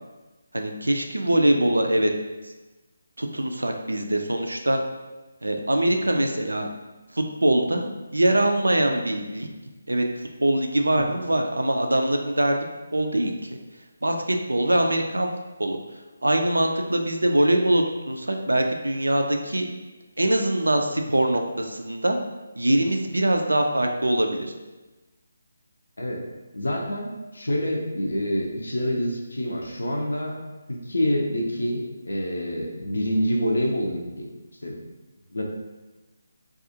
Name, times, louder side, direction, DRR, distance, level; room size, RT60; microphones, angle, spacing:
voice 1, 0.5-2.1 3.2-4.8 5.4-6.7 7.1-7.8 8.1-9.5 9.9-10.1 10.4-12.6 12.9-13.5 14.0-15.3 15.6-15.8 16.2-19.7 20.2-22.2 22.6-24.5, right 1 dB, 75° right, 4 dB, 0.3 m, -23 dB
voice 2, 26.5-30.4 30.7-34.3 34.6-34.7 35.3-35.4, equal, 70° left, 1 dB, 0.5 m, -27 dB
2.4 x 2.3 x 2.6 m, 1.2 s
figure-of-eight pair, 150°, 0 cm